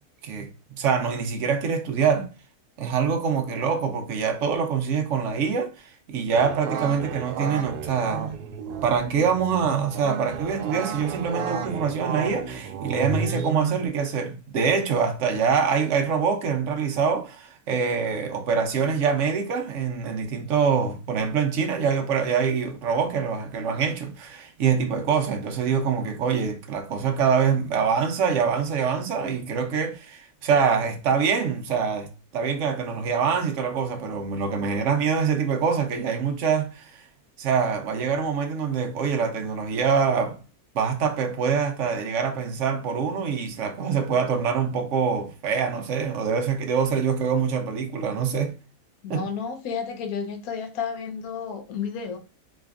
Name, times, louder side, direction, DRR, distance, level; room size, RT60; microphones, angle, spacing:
voice 1, 0.8-2.3 2.8-8.3 8.8-37.0 37.4-40.4 40.7-48.5 49.1-49.2, right 6 dB, 60° right, 0.9 m, -25 dB
sound 1, 6.3-13.9, right 6 dB, 85° right, 1.1 m, -32 dB
voice 2, 49.0-52.2, left 6 dB, 70° left, 1.2 m, -31 dB
4.1 x 3.2 x 2.4 m
omnidirectional pair, 1.6 m